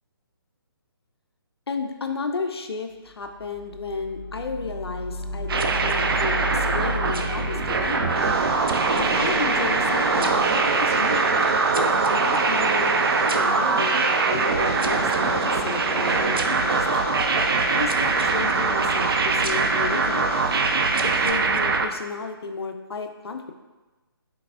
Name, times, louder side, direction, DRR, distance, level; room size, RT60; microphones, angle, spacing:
voice 1, 1.7-8.3 9.0-11.3 12.1-14.0 14.3-16.9 17.7-20.4 21.0-23.5, left 4 dB, 85° left, 6 dB, 0.5 m, -33 dB
sound 1, 3.2-12.0, left 1 dB, 45° left, 0.8 m, -34 dB
sound 2, 5.5-21.9, right 4 dB, 65° right, 0.4 m, -23 dB
Train, 8.2-21.3, right 2 dB, 85° right, 0.9 m, -30 dB
5.8 x 3.4 x 2.3 m, 1.2 s
figure-of-eight pair, 150°, 13 cm